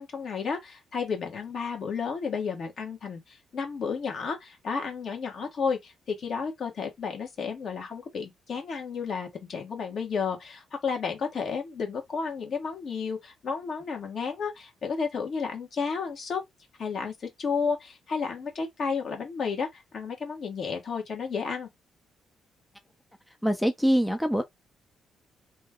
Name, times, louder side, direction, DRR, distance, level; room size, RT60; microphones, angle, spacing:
voice 1, 0.0-16.4 16.8-21.7, left 5 dB, 55° left, 1.3 m, -32 dB
voice 2, 23.4-24.4, equal, 5° left, 0.4 m, -24 dB
3.0 x 2.2 x 3.6 m
cardioid pair, 90°, 0 cm